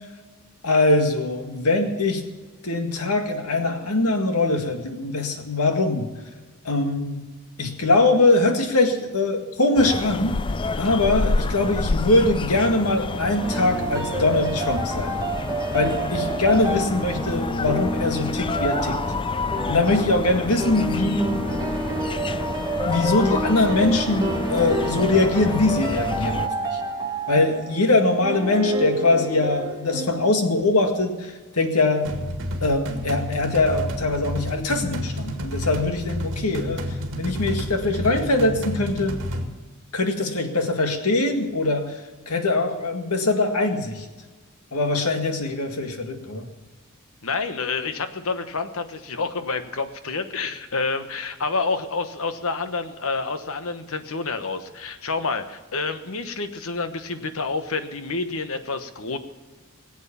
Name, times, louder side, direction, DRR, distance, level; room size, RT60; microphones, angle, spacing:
voice 1, 0.6-2.2 2.6-6.1 6.7-7.3 7.6-10.4 10.8-15.2 15.7-19.0 19.7-21.3 22.9-26.8 27.3-32.1 32.6-36.8 37.2-39.2 39.9-41.9 42.3-44.1 44.7-46.5, left 2 dB, 90° left, 5 dB, 2.0 m, -22 dB
sound 1, 9.8-26.5, left 3 dB, 25° left, 0.4 m, -29 dB
sound 2, 13.4-30.3, right 2 dB, 15° right, 1.4 m, -29 dB
sound 3, 32.0-39.4, equal, 60° right, 2.1 m, -30 dB
voice 2, 47.2-59.2, left 4 dB, 70° left, 9 dB, 1.2 m, -28 dB
20.5 x 8.1 x 7.0 m, 1.3 s
head